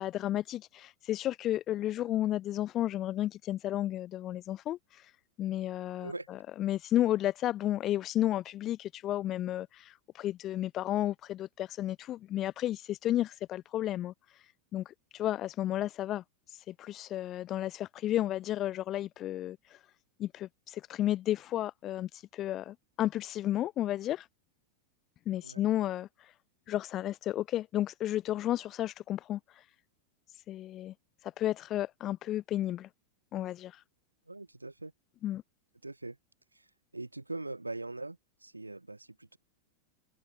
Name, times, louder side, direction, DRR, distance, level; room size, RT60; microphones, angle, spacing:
voice 1, 0.0-5.1 5.4-19.8 20.2-24.3 25.3-26.3 26.7-29.7 30.3-30.9 31.2-32.9 33.3-33.8 35.2-35.4, left 13 dB, 30° left, 0.6 m, -33 dB
voice 2, 34.3-34.9 35.8-36.2 36.5-36.7 36.9-39.4, right 2 dB, 85° right, 3.1 m, -42 dB
figure-of-eight pair, 90°, 0 cm